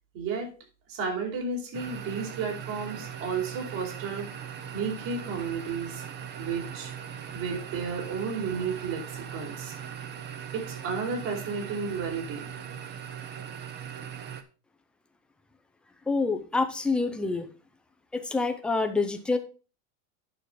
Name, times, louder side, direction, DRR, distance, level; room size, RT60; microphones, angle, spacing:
voice 1, 0.1-0.5 0.9-4.3 4.7-6.0 6.4-6.9 7.3-9.7 10.5-12.4, right 5 dB, 55° right, 0 dB, 4.3 m, -32 dB
sound 1, 1.7-14.4, right 8 dB, 25° right, 0.7 m, -40 dB
voice 2, 16.1-17.5 18.1-19.4, left 3 dB, ahead, 6 dB, 0.4 m, -27 dB
9.3 x 6.1 x 4.9 m, 0.35 s
supercardioid pair, 155°, 46 cm